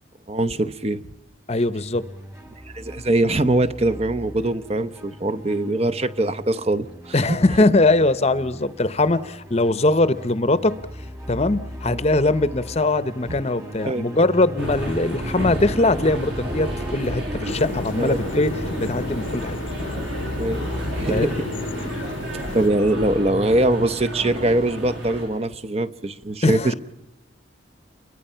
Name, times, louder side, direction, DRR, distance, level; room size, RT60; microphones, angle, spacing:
voice 1, 0.3-1.0 2.7-7.4 11.9-12.0 13.3-13.4 13.8-14.1 18.0-18.3 20.4-21.4 22.5-26.7, right 1 dB, 30° right, 0.8 m, -23 dB
voice 2, 1.5-2.0 7.1-10.7 11.3-18.5 18.8-19.6 21.1-21.3 26.4-26.7, left 2 dB, 30° left, 0.8 m, -21 dB
sound 1, 1.9-21.9, equal, 15° right, 1.9 m, -37 dB
sound 2, 14.6-25.2, equal, 60° right, 7.9 m, -31 dB
sound 3, 17.5-22.7, left 3 dB, 70° left, 0.8 m, -34 dB
29.5 x 23.0 x 5.7 m
head